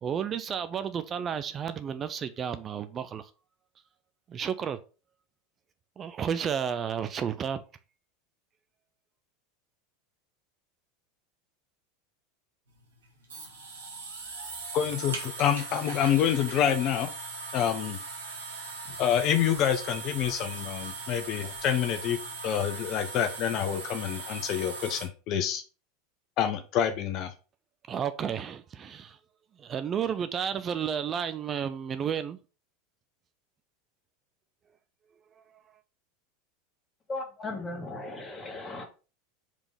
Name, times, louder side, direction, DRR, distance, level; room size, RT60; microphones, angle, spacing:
voice 1, 0.0-3.3 4.3-4.8 6.0-7.6 27.9-29.2 29.6-32.4 35.4-35.6, right 8 dB, 35° right, 0.5 m, -32 dB
sound 1, 12.7-25.1, right 3 dB, 85° right, 2.0 m, -40 dB
voice 2, 14.7-17.1 17.5-18.0 19.0-22.2 22.4-25.6 26.4-27.3, left 9 dB, 50° left, 0.8 m, -27 dB
voice 3, 37.1-38.8, left 2 dB, 25° left, 1.8 m, -37 dB
5.0 x 3.7 x 5.1 m
hypercardioid pair, 90°, 0 cm